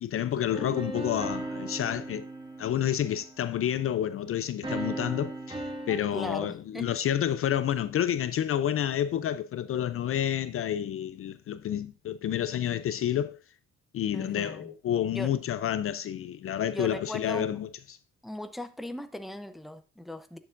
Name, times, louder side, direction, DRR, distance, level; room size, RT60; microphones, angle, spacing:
voice 1, 0.0-2.2 2.6-13.4 13.9-18.0, left 10 dB, 45° left, 0.4 m, -29 dB
sound 1, 0.5-3.7 4.6-6.0, right 2 dB, 15° right, 1.5 m, -37 dB
voice 2, 6.1-6.9 14.1-14.7 15.1-15.3 16.7-17.6 18.2-20.4, left 1 dB, ahead, 0.5 m, -38 dB
10.5 x 6.8 x 2.5 m
cardioid pair, 120°, 30 cm